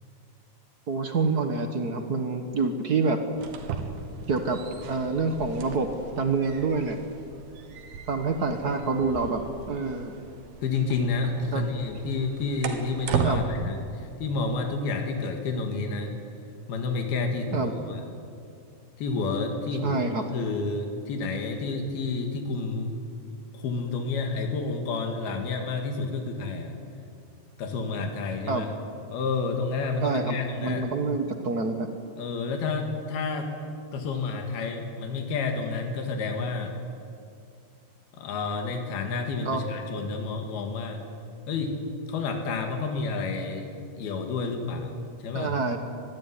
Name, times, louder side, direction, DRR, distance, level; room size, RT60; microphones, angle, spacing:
voice 1, 0.9-3.2 4.3-4.6 4.9-5.9 6.2-7.0 8.1-9.4 9.7-10.1 11.5-11.6 13.2-13.4 17.5-17.7 19.8-20.2 28.5-28.6 30.0-31.9 39.4-39.6 45.3-45.8, right 4 dB, 65° right, 6 dB, 0.9 m, -27 dB
sound 1, 3.3-13.4, right 7 dB, 80° right, 3.6 m, -36 dB
voice 2, 10.6-16.1 16.7-18.0 19.0-20.0 20.3-23.0 23.5-26.8 27.6-28.7 29.1-30.8 32.2-33.5 33.9-36.7 38.1-41.0 41.5-41.7 42.1-43.7 43.9-45.0 45.2-45.5, left 4 dB, 90° left, 4 dB, 4.0 m, -30 dB
25.0 x 21.0 x 9.9 m, 2.5 s
omnidirectional pair, 4.2 m